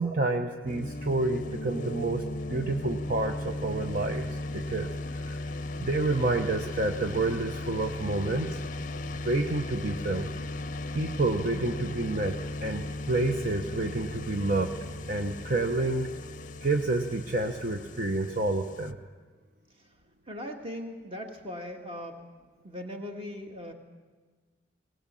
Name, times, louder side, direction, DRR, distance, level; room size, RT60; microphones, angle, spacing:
voice 1, 0.0-2.2 2.5-4.3 4.5-4.9 5.2-5.5 5.8-8.6 9.0-10.3 10.9-14.7 15.1-16.1 16.6-19.0, right 2 dB, 45° right, 4 dB, 0.9 m, -29 dB
sound 1, 0.7-18.9, left 2 dB, 45° left, 0.6 m, -37 dB
voice 2, 20.3-22.2 22.6-23.7, left 1 dB, 30° right, 4 dB, 1.9 m, -39 dB
20.0 x 19.5 x 7.6 m, 1.4 s
head